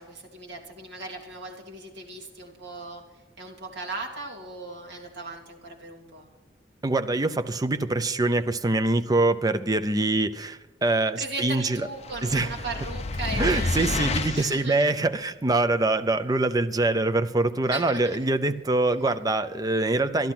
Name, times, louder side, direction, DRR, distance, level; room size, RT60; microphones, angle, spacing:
voice 1, 0.0-3.0 3.4-6.2 11.2-13.7 14.3-14.9 17.7-18.2, right 2 dB, 60° right, 0 dB, 2.3 m, -37 dB
voice 2, 6.8-11.9 12.2-12.5 13.4-20.3, right 2 dB, 20° right, 10 dB, 0.6 m, -24 dB
sound 1, 12.0-14.6, left 3 dB, 35° left, 0.6 m, -29 dB
12.0 x 12.0 x 5.9 m, 1.2 s
head